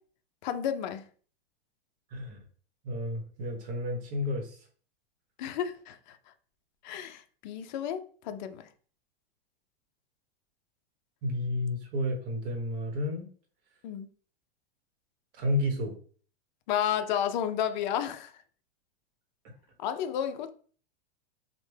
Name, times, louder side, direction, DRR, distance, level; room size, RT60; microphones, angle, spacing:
voice 1, 0.4-1.0 5.4-6.2 6.8-8.7 13.8-14.1 16.7-18.3 19.8-20.5, left 9 dB, 50° left, 0.5 m, -32 dB
voice 2, 2.8-4.5 11.2-13.2 15.4-15.9, left 1 dB, 40° right, 1.0 m, -31 dB
3.2 x 2.1 x 3.2 m
supercardioid pair, 150°, 31 cm